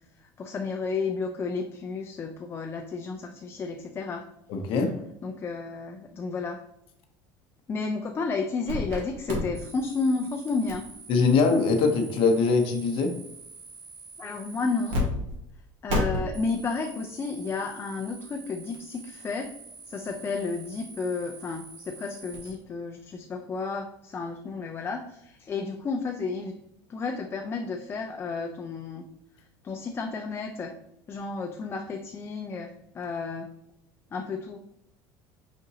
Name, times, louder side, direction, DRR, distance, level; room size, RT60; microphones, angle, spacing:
voice 1, 0.4-4.3 5.2-6.6 7.7-10.9 14.2-15.0 15.8-19.5 19.9-26.5 26.9-29.0 29.6-30.7 31.1-33.5 34.1-34.6, left 4 dB, 25° left, 3 dB, 0.4 m, -32 dB
voice 2, 4.5-5.0 11.1-13.2, left 4 dB, 55° left, 5 dB, 0.7 m, -22 dB
sound 1, 8.7-9.0 9.3-15.0 15.3-15.4 15.9-22.5, left 1 dB, 60° right, 1.6 m, -37 dB
5.1 x 3.8 x 2.7 m, 0.81 s
cardioid pair, 135°, 11 cm